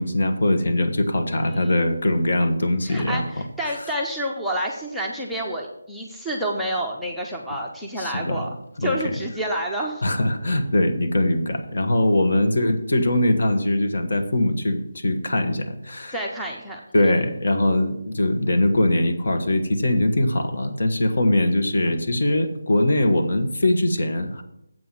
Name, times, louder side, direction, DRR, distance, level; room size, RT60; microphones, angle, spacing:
voice 1, 0.0-3.4 8.0-8.5 8.8-9.1 10.0-16.1 16.9-24.4, left 1 dB, 55° left, 6 dB, 1.3 m, -22 dB
voice 2, 1.4-1.9 2.9-8.5 8.8-10.0 10.5-10.6 16.1-17.1, right 1 dB, ahead, -3 dB, 0.6 m, -29 dB
7.8 x 5.6 x 7.5 m, 0.80 s
figure-of-eight pair, 175°, 0 cm